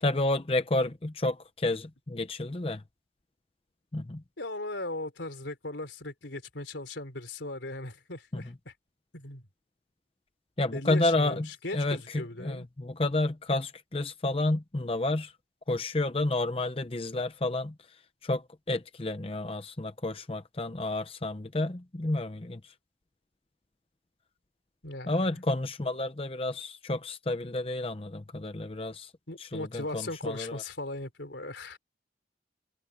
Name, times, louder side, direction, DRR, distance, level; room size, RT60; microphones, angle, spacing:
voice 1, 0.0-2.8 3.9-4.2 8.3-8.4 10.6-11.5 11.7-15.3 15.7-17.7 18.2-18.4 18.7-22.6 25.1-29.1 29.5-30.6, left 2 dB, 30° left, 0.7 m, -30 dB
voice 2, 4.4-8.7 9.1-9.5 10.7-12.7 24.8-25.4 29.3-31.8, left 2 dB, 85° left, 3.6 m, -38 dB
head